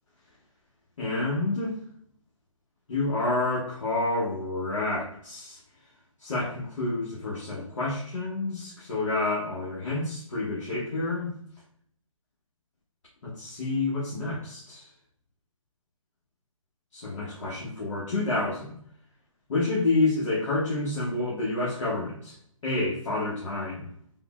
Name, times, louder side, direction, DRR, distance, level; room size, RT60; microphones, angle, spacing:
voice 1, 1.0-1.7 2.9-5.6 6.2-11.3 13.2-14.9 16.9-18.7 19.5-22.3 22.6-23.9, left 2 dB, 65° left, -6 dB, 1.0 m, -29 dB
3.5 x 2.1 x 2.3 m, 0.64 s
hypercardioid pair, 150°, 18 cm